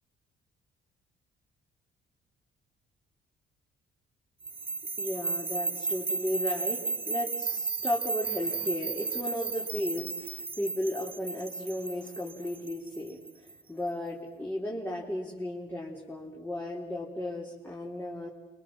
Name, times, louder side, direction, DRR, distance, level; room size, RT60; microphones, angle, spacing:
sound 1, 4.4-13.5, right 4 dB, 25° right, 1.0 m, -34 dB
voice 1, 5.0-18.3, left 1 dB, 10° left, -3 dB, 4.0 m, -35 dB
28.0 x 23.5 x 7.6 m, 1.1 s
cardioid pair, 90°, 20 cm